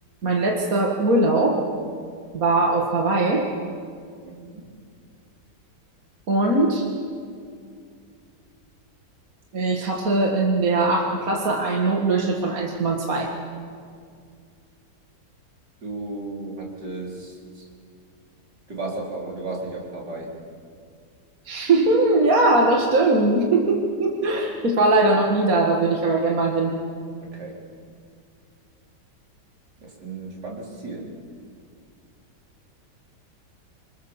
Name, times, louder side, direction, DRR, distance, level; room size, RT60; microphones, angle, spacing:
voice 1, 0.2-1.6 2.3-3.5 6.3-6.9 9.5-13.3 21.5-26.7, right 2 dB, 55° right, 0 dB, 2.3 m, -20 dB
voice 2, 4.2-4.7 15.8-17.7 18.7-20.3 27.2-27.6 29.8-31.1, right 2 dB, 75° right, -2 dB, 5.0 m, -34 dB
26.5 x 26.0 x 7.2 m, 2.3 s
omnidirectional pair, 1.9 m